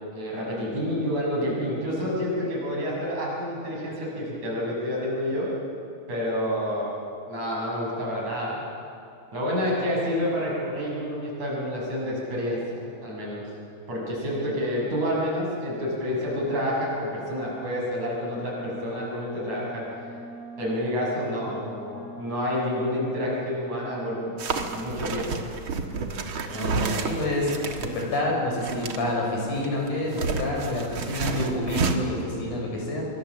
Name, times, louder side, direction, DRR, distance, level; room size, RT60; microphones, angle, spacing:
voice 1, 0.0-5.5 6.1-6.9 7.3-8.6 9.3-13.5 13.9-19.8 20.6-24.3 24.7-25.4 32.4-32.6, equal, 70° right, -3 dB, 8.0 m, -29 dB
Wind instrument woodwind instrument, 18.2-25.0, left 1 dB, 25° left, 4.5 m, -43 dB
sound 1, 24.4-28.2 28.6-29.1 29.5-32.0, right 4 dB, 50° right, 2.0 m, -30 dB
voice 2, 26.5-27.5 27.8-33.1, left 1 dB, 85° left, -1 dB, 7.1 m, -28 dB
26.0 x 23.5 x 7.3 m, 2.6 s
omnidirectional pair, 3.4 m